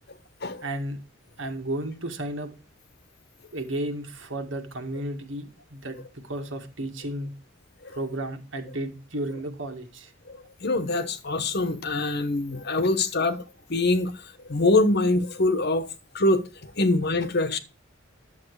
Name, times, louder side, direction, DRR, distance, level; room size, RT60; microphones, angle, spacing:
voice 1, 0.6-1.0 1.4-2.5 3.5-6.0 6.2-7.3 7.9-10.1, right 1 dB, 70° right, 2.0 m, -33 dB
voice 2, 10.3-13.4 13.7-14.2 14.5-15.9 16.1-17.6, left 2 dB, 55° left, 1.1 m, -24 dB
11.0 x 7.4 x 4.8 m
head